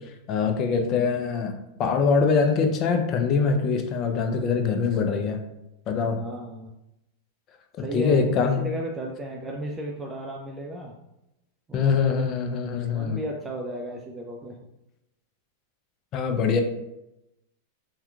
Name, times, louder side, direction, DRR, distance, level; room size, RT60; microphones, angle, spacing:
voice 1, 0.3-1.5 1.8-5.4 5.9-6.2 7.9-8.6 11.7-13.2 16.1-16.6, left 5 dB, 40° left, 5 dB, 0.5 m, -23 dB
voice 2, 6.2-6.7 7.8-10.9 11.7-12.2 12.9-14.5, right 1 dB, 20° right, -1 dB, 0.4 m, -34 dB
4.2 x 2.2 x 2.4 m, 0.89 s
hypercardioid pair, 100°, 0 cm